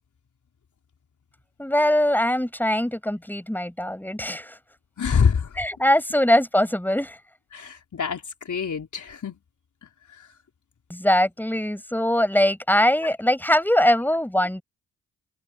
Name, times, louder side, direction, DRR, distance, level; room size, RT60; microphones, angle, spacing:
voice 1, 1.6-4.6 5.6-7.2 10.9-14.6, left 1 dB, 5° left, 6.3 m, -22 dB
voice 2, 5.0-5.6 7.5-9.4 10.1-10.3, left 6 dB, 60° left, 4.4 m, -25 dB
supercardioid pair, 45°, 34 cm